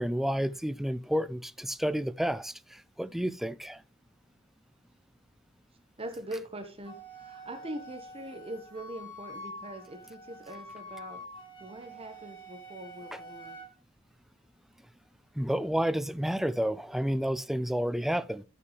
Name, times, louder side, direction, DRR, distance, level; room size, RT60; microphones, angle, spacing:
voice 1, 0.0-2.5 3.0-3.8 15.4-18.4, equal, ahead, 0.4 m, -30 dB
voice 2, 6.0-11.2 11.6-13.6, right 1 dB, 30° right, 1.3 m, -42 dB
Wind instrument woodwind instrument, 6.8-13.7, equal, 25° left, 3.4 m, -46 dB
14.0 x 5.7 x 3.3 m
head